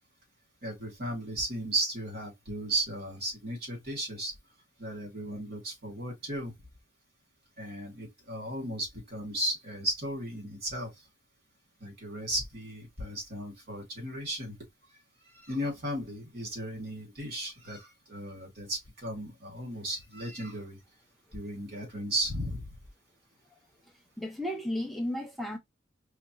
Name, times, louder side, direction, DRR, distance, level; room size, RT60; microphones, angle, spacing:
voice 1, 0.6-4.3 4.8-6.5 7.6-10.9 11.8-14.6 15.3-20.8 21.3-22.7, right 1 dB, 50° right, 2.4 m, -35 dB
voice 2, 24.2-25.6, left 1 dB, ahead, 0.5 m, -33 dB
5.0 x 2.3 x 3.0 m
head